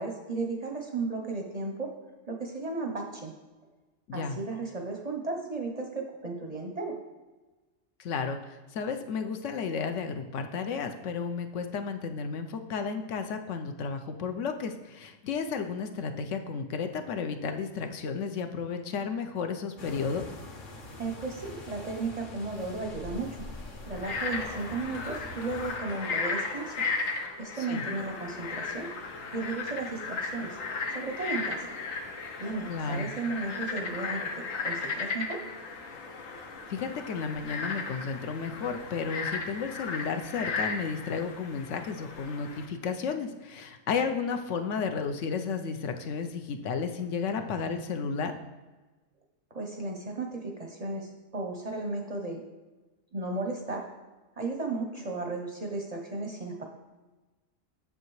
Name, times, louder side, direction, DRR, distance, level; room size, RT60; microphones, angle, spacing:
voice 1, 0.0-1.9 2.3-3.3 4.1-7.0 21.0-23.4 23.8-26.8 27.4-28.9 29.3-30.6 30.9-31.7 32.4-35.4 49.5-52.4 53.1-53.8 54.4-56.6, right 3 dB, 40° right, 2 dB, 0.6 m, -34 dB
voice 2, 8.0-20.3 27.7-27.8 32.7-33.1 36.7-48.3, left 5 dB, 70° left, 7 dB, 0.9 m, -33 dB
sound 1, 19.8-25.8, left 2 dB, 45° left, 0.8 m, -44 dB
Frog, 23.9-42.7, left 4 dB, 90° left, 1.2 m, -36 dB
7.8 x 6.5 x 3.1 m, 1.2 s
omnidirectional pair, 1.3 m